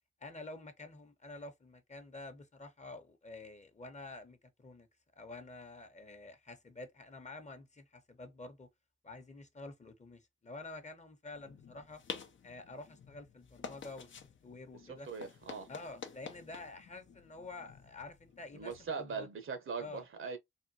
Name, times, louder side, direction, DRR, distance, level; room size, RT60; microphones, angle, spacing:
voice 1, 0.2-4.9 5.2-8.7 9.0-12.0 12.4-14.2 14.4-15.1 15.7-19.3 19.8-20.0, left 2 dB, 35° left, 0.8 m, -49 dB
sound 1, 11.3-18.9, left 6 dB, 65° left, 0.6 m, -50 dB
voice 2, 14.9-15.7 18.5-20.4, right 5 dB, 70° right, 0.8 m, -41 dB
3.5 x 2.2 x 2.7 m
cardioid pair, 45°, 21 cm